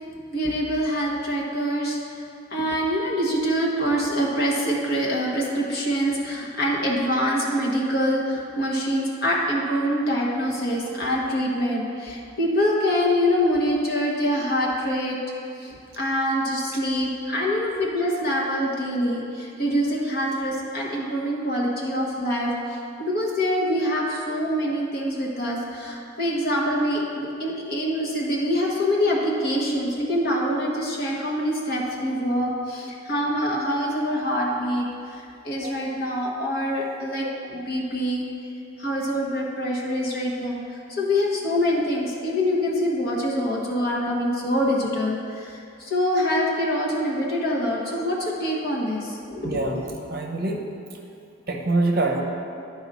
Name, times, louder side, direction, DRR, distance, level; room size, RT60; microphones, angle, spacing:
voice 1, 0.3-2.0 2.5-15.2 15.6-34.8 35.1-38.2 38.8-49.8, equal, 50° left, -3 dB, 1.2 m, -25 dB
voice 2, 49.4-49.8 50.1-50.6 51.5-52.2, right 2 dB, 45° right, 1 dB, 0.8 m, -24 dB
11.0 x 4.8 x 4.2 m, 2.5 s
head